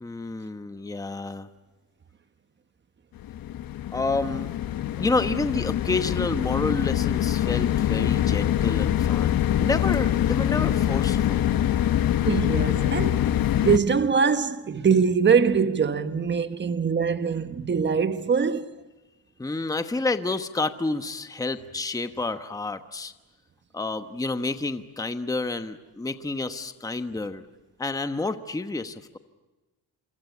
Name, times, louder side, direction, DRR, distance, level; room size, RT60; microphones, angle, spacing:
voice 1, 0.0-1.5 3.9-4.5 5.0-11.5 19.4-23.1 23.7-27.4 27.8-29.2, left 3 dB, 10° left, 1.1 m, -29 dB
sound 1, 3.2-13.8, left 11 dB, 55° left, 1.1 m, -24 dB
voice 2, 12.2-18.7, right 6 dB, 25° right, 1.3 m, -23 dB
27.5 x 24.5 x 8.5 m
cardioid pair, 125°, 41 cm